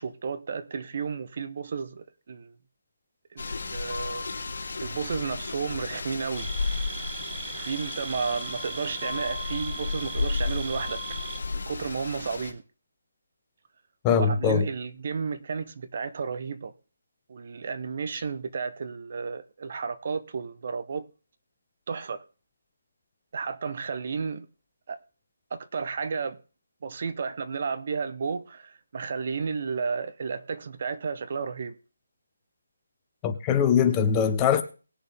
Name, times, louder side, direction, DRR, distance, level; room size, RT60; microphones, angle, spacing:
voice 1, 0.0-2.5 3.3-4.3 4.8-6.5 7.5-11.0 11.5-12.6 14.2-16.7 17.3-21.1 21.9-22.2 23.3-24.5 24.9-25.0 25.5-26.4 26.8-31.8, right 5 dB, 40° right, 1.0 m, -32 dB
sound 1, 3.4-12.5, left 4 dB, 50° left, 3.3 m, -33 dB
sound 2, 6.3-11.4, right 8 dB, 10° right, 0.9 m, -39 dB
voice 2, 14.0-14.7 33.2-34.6, left 7 dB, 15° left, 0.8 m, -22 dB
19.5 x 6.7 x 3.6 m
figure-of-eight pair, 150°, 0 cm